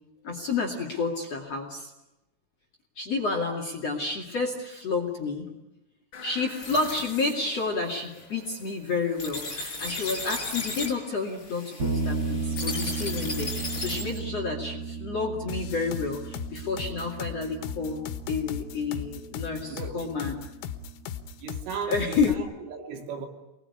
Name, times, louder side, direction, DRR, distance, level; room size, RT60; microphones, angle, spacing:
voice 1, 0.2-1.9 3.0-5.5 6.2-18.0 18.3-20.5 21.9-22.4, left 4 dB, 40° left, 2.6 m, -30 dB
sound 1, 6.1-14.2, left 2 dB, 25° left, 5.4 m, -36 dB
sound 2, 11.8-21.3, right 4 dB, 30° right, 2.8 m, -35 dB
sound 3, 15.5-22.4, left 9 dB, 80° left, 3.8 m, -36 dB
voice 2, 19.7-20.3 21.4-23.3, right 6 dB, 70° right, 5.3 m, -37 dB
28.0 x 21.0 x 9.8 m
omnidirectional pair, 5.9 m